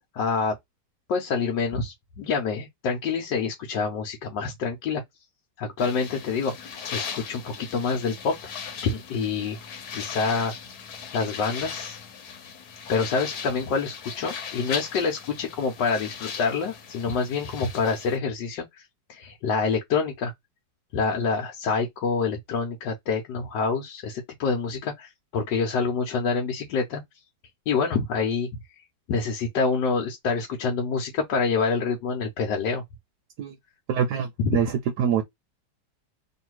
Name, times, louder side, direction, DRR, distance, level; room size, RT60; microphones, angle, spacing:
voice 1, 0.1-0.5 1.1-5.0 5.6-8.5 8.8-10.5 11.1-12.0 12.9-20.3 20.9-27.0 27.7-28.5 29.1-32.8 34.4-34.6, left 5 dB, 85° left, 1.4 m, -27 dB
sound 1, 5.8-18.2, left 6 dB, 65° left, 1.4 m, -38 dB
voice 2, 33.9-35.2, right 8 dB, 75° right, 1.3 m, -25 dB
3.1 x 2.7 x 4.5 m
omnidirectional pair, 1.9 m